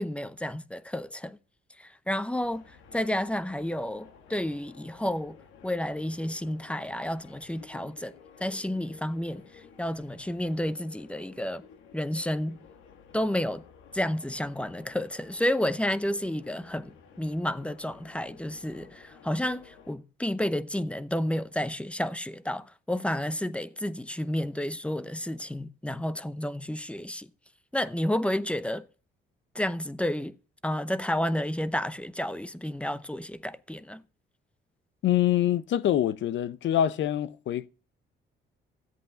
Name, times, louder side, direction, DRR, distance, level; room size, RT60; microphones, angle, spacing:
voice 1, 0.0-1.4 1.8-5.4 5.6-8.1 8.4-11.6 11.9-12.6 13.1-13.6 13.9-27.3 27.7-28.9 29.5-30.3 30.6-34.0, left 1 dB, 5° left, 0.7 m, -31 dB
sound 1, 2.4-19.9, left 6 dB, 90° left, 1.9 m, -54 dB
voice 2, 35.0-37.7, left 11 dB, 70° left, 0.7 m, -25 dB
13.5 x 8.3 x 5.5 m
cardioid pair, 90°, 20 cm